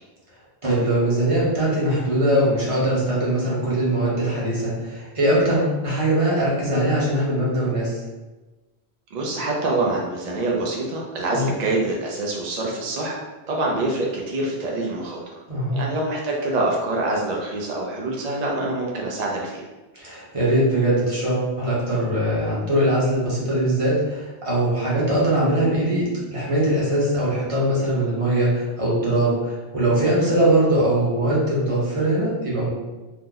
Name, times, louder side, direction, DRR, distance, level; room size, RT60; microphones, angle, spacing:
voice 1, 0.6-8.0 11.3-11.5 15.5-15.8 19.9-32.7, right 1 dB, 35° right, -7 dB, 0.9 m, -21 dB
voice 2, 9.1-15.2 15.7-19.7 30.1-30.3, right 2 dB, 50° right, -2 dB, 0.5 m, -25 dB
2.8 x 2.1 x 3.7 m, 1.2 s
omnidirectional pair, 1.1 m